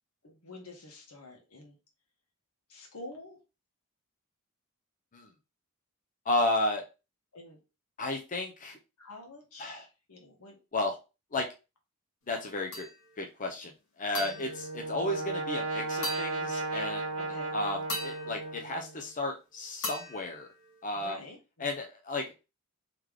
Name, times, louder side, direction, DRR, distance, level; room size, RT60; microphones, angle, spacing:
voice 1, 0.2-1.8 2.7-3.4 7.3-7.6 9.0-10.6 14.2-14.4 17.2-17.5 20.9-21.8, left 2 dB, 85° left, 1 dB, 1.4 m, -48 dB
voice 2, 6.2-6.8 8.0-8.8 9.6-9.8 10.7-11.0 11.3-11.5 12.3-12.9 13.2-13.7 14.0-17.2 17.5-20.5 20.8-21.2 21.6-22.3, left 2 dB, 35° left, 2 dB, 0.6 m, -33 dB
sound 1, 12.7-13.3 14.1-15.6 16.0-17.0 17.9-19.4 19.8-21.2, left 1 dB, 65° left, 1.6 m, -41 dB
Brass instrument, 14.2-19.0, right 2 dB, 75° right, 0.8 m, -35 dB
3.3 x 3.2 x 3.6 m, 0.29 s
head